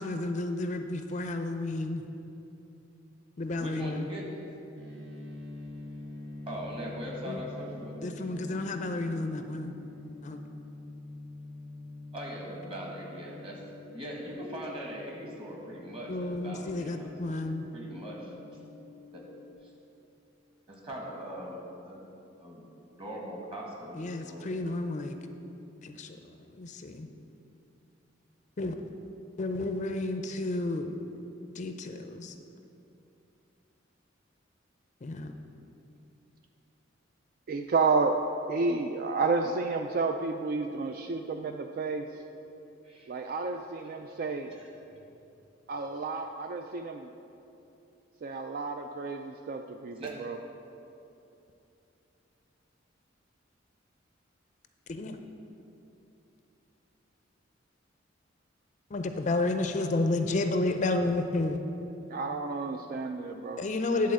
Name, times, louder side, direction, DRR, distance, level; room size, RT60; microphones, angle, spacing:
voice 1, 0.0-2.0 3.4-4.1 7.2-7.4 8.0-9.7 10.2-10.4 16.1-17.6 24.0-25.2 25.8-26.2 26.5-27.1 28.6-28.7 29.4-31.0 31.6-32.3 35.0-35.3 54.9-55.2 58.9-61.6 63.6-64.1, left 2 dB, 40° left, 7 dB, 0.5 m, -31 dB
voice 2, 3.6-4.4 6.5-8.4 12.1-18.3 19.1-19.2 19.6-19.7 20.7-22.0 22.4-22.6 22.9-24.5 42.8-43.1 44.1-44.2 44.5-45.0 50.0-50.1, equal, 30° right, -2 dB, 1.6 m, -41 dB
sound 1, 4.7-19.5, left 2 dB, 85° right, 1.4 m, -46 dB
voice 3, 37.5-38.2 38.5-42.1 43.1-44.5 45.7-47.1 48.2-50.4 62.1-63.6, right 4 dB, 50° right, 5 dB, 0.3 m, -31 dB
10.5 x 4.1 x 7.5 m, 2.9 s
head